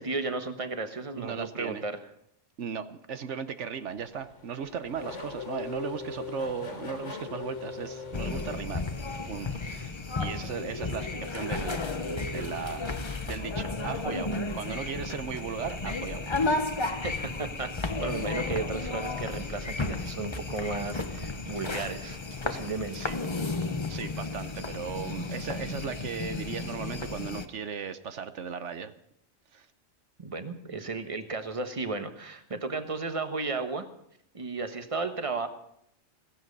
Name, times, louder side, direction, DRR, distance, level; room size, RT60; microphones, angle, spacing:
voice 1, 0.0-2.0 17.0-23.1 30.2-33.8 34.3-35.5, right 3 dB, 25° right, 8 dB, 1.3 m, -34 dB
voice 2, 1.2-1.8 2.6-8.8 9.2-11.9 12.2-16.6 22.9-23.2 23.9-28.9 29.5-29.7, right 6 dB, 70° right, 11 dB, 1.1 m, -37 dB
Race car auto racing / Accelerating revving vroom, 3.8-9.4, left 4 dB, 65° left, 2.1 m, -40 dB
sound 1, 8.1-27.5, left 3 dB, 25° left, 0.8 m, -33 dB
sound 2, 19.7-22.0 22.3-25.0 25.3-25.7, right 10 dB, 90° right, 1.2 m, -49 dB
16.5 x 15.5 x 5.4 m, 0.74 s
omnidirectional pair, 1.3 m